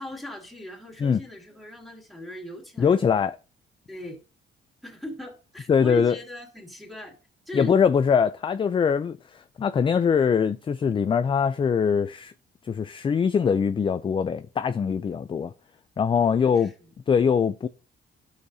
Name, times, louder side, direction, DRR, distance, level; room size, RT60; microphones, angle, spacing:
voice 1, 0.0-3.0 3.9-4.2 4.8-7.2 7.5-7.7 16.1-16.7, left 1 dB, ahead, 2.6 m, -39 dB
voice 2, 2.8-3.4 5.7-6.1 7.5-12.3 12.6-15.5 16.0-16.7 17.1-17.7, left 6 dB, 25° left, 0.3 m, -22 dB
11.0 x 6.5 x 2.7 m
cardioid pair, 90°, 20 cm